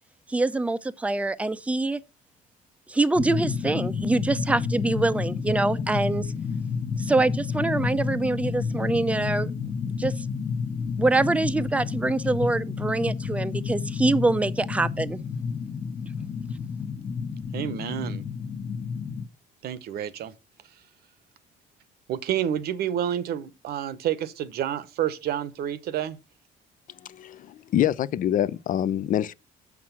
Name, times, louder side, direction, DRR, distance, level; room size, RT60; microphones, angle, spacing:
voice 1, 0.3-2.0 2.9-6.3 7.0-9.5 10.0-10.2 11.0-15.2, right 2 dB, 10° right, 0.5 m, -25 dB
sound 1, 3.1-19.3, left 5 dB, 35° left, 1.0 m, -30 dB
voice 2, 17.5-18.2 19.6-20.3 22.1-26.2, right 10 dB, 70° right, 0.9 m, -29 dB
voice 3, 27.1-29.3, left 11 dB, 55° left, 0.5 m, -25 dB
7.3 x 6.1 x 5.8 m
cardioid pair, 110°, 17 cm